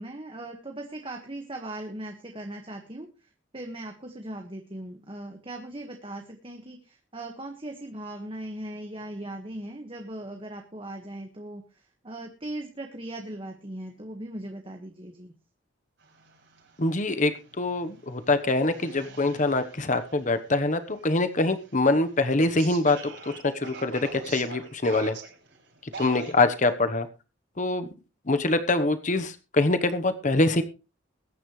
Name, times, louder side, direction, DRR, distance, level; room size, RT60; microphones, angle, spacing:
voice 1, 0.0-15.3, right 1 dB, 30° right, 3 dB, 1.6 m, -39 dB
sound 1, 16.0-26.7, right 5 dB, 65° right, 6.4 m, -46 dB
voice 2, 16.8-25.2 25.8-27.1 27.6-27.9 28.3-30.6, left 2 dB, 40° left, 10 dB, 1.1 m, -24 dB
21.5 x 10.0 x 3.2 m, 0.31 s
head